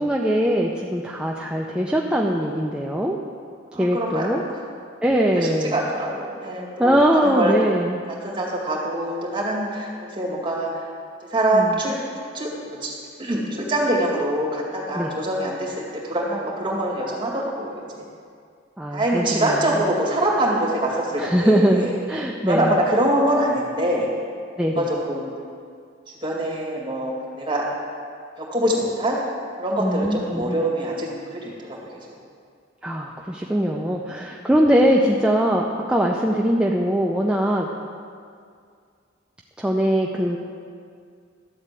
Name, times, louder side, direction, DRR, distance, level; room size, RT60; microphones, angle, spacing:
voice 1, 0.0-3.2 3.7-4.4 5.0-5.8 6.8-8.0 11.5-11.8 14.9-15.1 18.8-19.6 21.2-22.7 24.6-24.9 29.8-30.6 32.8-37.7 39.6-40.4, equal, 5° right, -2 dB, 0.5 m, -21 dB
voice 2, 3.7-4.4 5.3-7.5 8.1-10.7 11.3-12.9 13.2-15.7 16.0-18.1 18.9-22.0 22.4-24.1 24.7-25.3 26.2-27.6 28.4-29.2 29.6-31.8, right 1 dB, 25° right, -4 dB, 2.3 m, -24 dB
12.5 x 4.3 x 8.2 m, 2.2 s
head